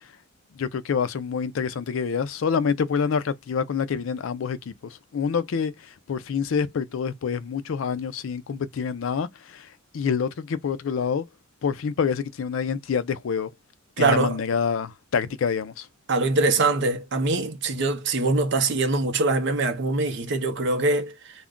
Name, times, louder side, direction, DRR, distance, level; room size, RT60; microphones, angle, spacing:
voice 1, 0.5-5.7 6.1-9.7 9.9-11.3 11.6-13.5 14.0-15.9, left 6 dB, 70° left, 0.4 m, -27 dB
voice 2, 14.0-14.4 16.1-21.1, right 3 dB, 60° right, 0.6 m, -23 dB
2.4 x 2.1 x 3.6 m
head